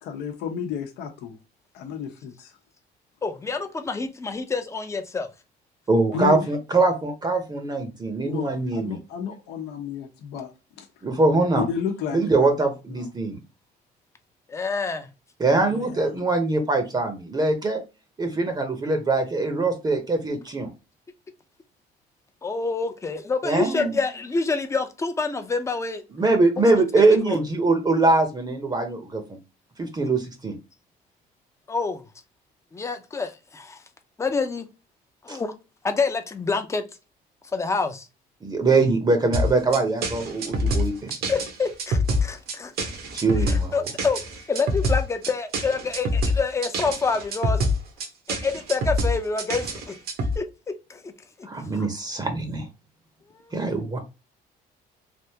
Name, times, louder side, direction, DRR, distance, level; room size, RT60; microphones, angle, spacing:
voice 1, 0.0-1.4 1.7-2.5 6.1-6.5 8.2-10.5 10.8-10.9 11.6-12.5 13.0-13.1 15.5-16.1, left 7 dB, 85° left, 0.8 m, -32 dB
voice 2, 3.2-5.3 14.5-15.1 22.4-26.0 27.0-27.4 31.7-32.0 32.7-33.8 34.2-34.7 35.2-35.5 35.8-36.8 37.5-38.1 41.3-42.7 43.4-44.2 44.5-47.6 48.3-50.0 50.4-51.1 51.4-51.9 53.3-53.6, left 4 dB, 15° left, 0.5 m, -27 dB
voice 3, 5.9-9.0 11.0-11.7 12.1-13.4 15.4-17.8 18.2-20.7 23.4-24.0 26.1-29.4 29.8-30.6 35.3-35.4 38.4-41.1 43.1-43.7 51.4-52.7 53.5-54.0, right 3 dB, 25° right, 0.7 m, -22 dB
sound 1, 39.3-50.3, left 1 dB, 70° right, 1.0 m, -25 dB
3.4 x 2.5 x 2.8 m
cardioid pair, 110°, 17 cm